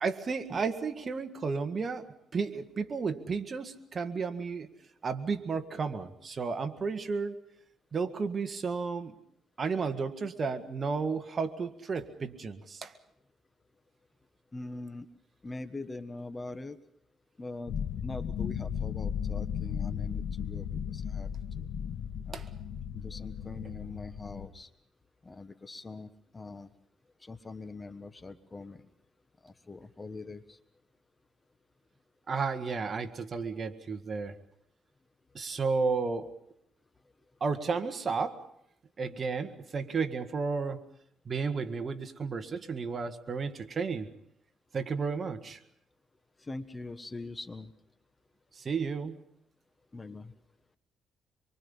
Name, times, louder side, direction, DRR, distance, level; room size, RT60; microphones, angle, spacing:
voice 1, 0.0-4.7 5.0-7.4 7.9-9.2 9.6-12.9 22.3-22.5 32.3-34.3 35.3-36.3 37.4-38.5 39.0-40.8 41.3-44.1 44.7-45.6 48.5-49.2, right 5 dB, 40° right, 8 dB, 1.7 m, -33 dB
voice 2, 14.5-15.1 15.4-16.8 17.4-17.7 18.0-21.3 21.6-21.7 22.3-22.4 22.9-24.7 25.2-26.7 27.2-28.8 29.4-30.6 46.4-47.7 49.9-50.3, left 3 dB, 25° left, 11 dB, 1.4 m, -43 dB
sound 1, 17.7-24.5, left 8 dB, 70° left, 1.7 m, -35 dB
26.0 x 24.0 x 5.6 m, 0.73 s
cardioid pair, 90°, 0 cm